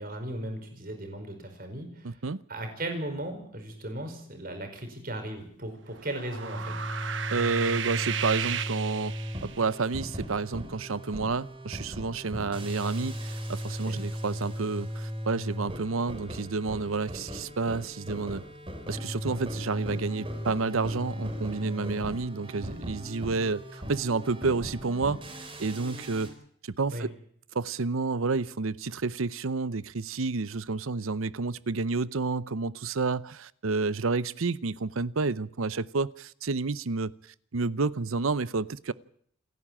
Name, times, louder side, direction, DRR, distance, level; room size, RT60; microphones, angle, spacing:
voice 1, 0.0-2.2 2.5-6.8 13.8-14.0 26.9-27.1, right 1 dB, 45° right, 5.1 m, -37 dB
voice 2, 2.0-2.4 7.3-9.2 9.6-18.4 18.9-25.2 25.6-26.3 26.6-27.1 27.5-37.1 37.5-38.9, right 4 dB, 80° right, 0.7 m, -30 dB
sound 1, 6.0-9.7, right 8 dB, 60° right, 1.1 m, -34 dB
sound 2, 6.3-26.3, equal, 25° right, 4.4 m, -37 dB
28.0 x 11.0 x 8.8 m
head